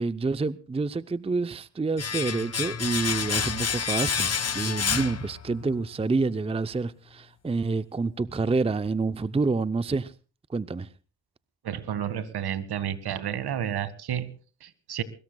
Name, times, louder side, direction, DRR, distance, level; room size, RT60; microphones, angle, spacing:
voice 1, 0.0-10.1 10.5-10.9, right 3 dB, 15° right, 0.6 m, -28 dB
Domestic sounds home sounds, 2.0-5.8 6.1-6.2, left 6 dB, 35° left, 1.5 m, -29 dB
voice 2, 11.6-15.0, right 9 dB, 65° right, 1.9 m, -31 dB
23.5 x 21.0 x 2.3 m
cardioid pair, 80°, 42 cm